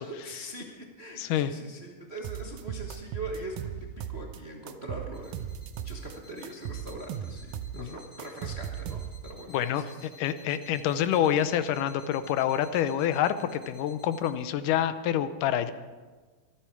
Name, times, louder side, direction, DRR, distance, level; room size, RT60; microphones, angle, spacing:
voice 1, 0.0-5.5 5.8-10.0, right 1 dB, 65° right, 0 dB, 0.6 m, -42 dB
voice 2, 1.2-1.5 7.7-7.9 9.5-15.7, left 10 dB, 85° left, 12 dB, 2.3 m, -27 dB
sound 1, 2.2-4.4 4.7-6.1 6.4-9.4, right 9 dB, 90° right, 2.3 m, -37 dB
sound 2, 5.1-14.3, left 2 dB, 35° left, 3.6 m, -53 dB
25.0 x 10.5 x 4.6 m, 1.4 s
omnidirectional pair, 3.7 m